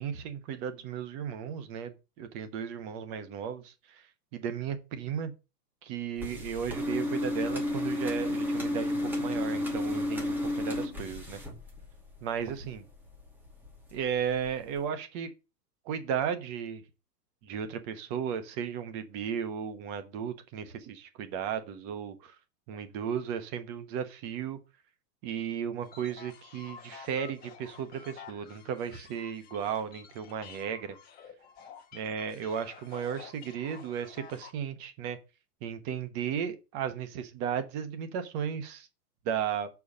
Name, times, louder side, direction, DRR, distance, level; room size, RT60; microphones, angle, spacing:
voice 1, 0.0-4.0 4.3-5.3 5.8-11.4 12.2-12.8 13.9-15.3 15.9-16.8 17.4-22.3 22.7-24.6 25.2-31.0 31.9-35.2 35.6-38.9 39.2-39.7, right 8 dB, 30° right, 1.1 m, -35 dB
sound 1, 6.2-12.1 12.5-13.3 13.6-13.9 14.4-14.5 14.8-14.9, left 1 dB, 5° right, 1.0 m, -32 dB
sound 2, 25.8-34.5, left 7 dB, 20° left, 1.4 m, -50 dB
6.9 x 4.7 x 6.4 m
supercardioid pair, 160°, 49 cm